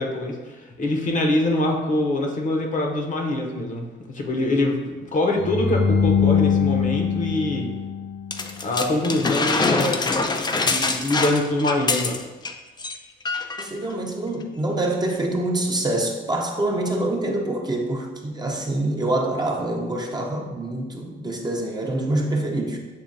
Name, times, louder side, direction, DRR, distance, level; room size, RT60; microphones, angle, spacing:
voice 1, 0.0-7.7 8.6-10.1 10.7-12.2, left 1 dB, 40° left, 1 dB, 0.8 m, -24 dB
sound 1, 5.4-8.6, left 6 dB, 75° left, 0.5 m, -22 dB
sound 2, 8.3-12.5 12.8-13.0 13.3-13.7 14.4-14.5, left 3 dB, 20° left, 0.4 m, -24 dB
voice 2, 13.6-22.8, right 2 dB, 20° right, 0 dB, 0.6 m, -25 dB
7.3 x 2.7 x 2.7 m, 1.2 s
cardioid pair, 90°, 20 cm